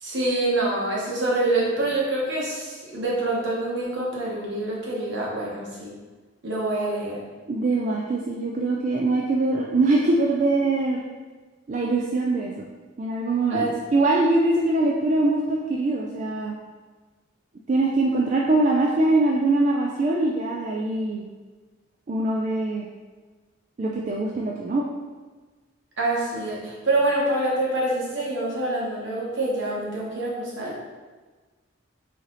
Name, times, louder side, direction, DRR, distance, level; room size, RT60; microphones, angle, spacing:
voice 1, 0.0-5.9 6.4-7.2 13.5-13.7 26.0-30.8, right 2 dB, 65° right, -4 dB, 1.2 m, -26 dB
voice 2, 7.5-11.0 11.7-12.7 13.0-13.7 13.9-16.6 17.7-21.3 22.1-22.9 23.8-24.8, right 2 dB, 40° right, -2 dB, 0.3 m, -23 dB
4.1 x 3.2 x 3.9 m, 1.3 s
head